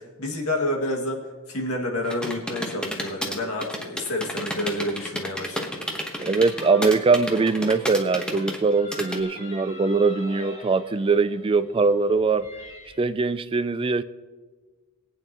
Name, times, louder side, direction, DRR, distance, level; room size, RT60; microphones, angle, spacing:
voice 1, 0.0-5.7, left 1 dB, 85° left, 1 dB, 2.1 m, -29 dB
sound 1, 2.0-9.2, equal, 5° left, 1.1 m, -31 dB
sound 2, 4.0-13.0, left 1 dB, 30° left, 2.2 m, -45 dB
voice 2, 6.2-12.5 13.0-14.0, right 4 dB, 25° right, 13 dB, 0.3 m, -22 dB
22.0 x 9.0 x 3.0 m, 1.4 s
head